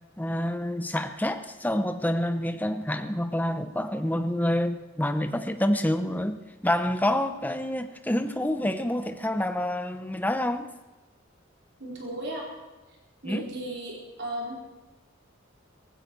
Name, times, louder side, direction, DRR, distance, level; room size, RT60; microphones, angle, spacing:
voice 1, 0.2-10.7 13.2-13.5, left 1 dB, 10° left, 8 dB, 0.8 m, -27 dB
voice 2, 11.8-12.5 13.2-14.7, right 1 dB, 55° right, -3 dB, 4.3 m, -35 dB
17.5 x 16.0 x 4.7 m, 1.2 s
head